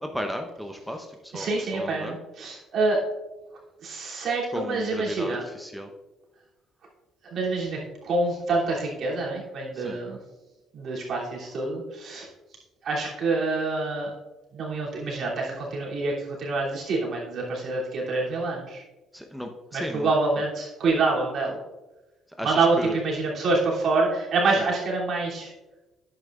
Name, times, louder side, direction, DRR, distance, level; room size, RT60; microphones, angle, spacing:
voice 1, 0.0-2.2 4.5-5.9 9.7-10.0 19.1-20.1 22.4-23.0 24.6-24.7, equal, ahead, 4 dB, 0.9 m, -35 dB
voice 2, 1.3-3.0 3.8-5.4 7.3-7.8 8.0-10.2 10.7-12.3 12.8-14.1 14.5-18.8 19.7-21.6 22.4-25.5, right 3 dB, 55° right, -4 dB, 2.9 m, -26 dB
10.5 x 8.3 x 2.5 m, 1.1 s
hypercardioid pair, 55°, 0 cm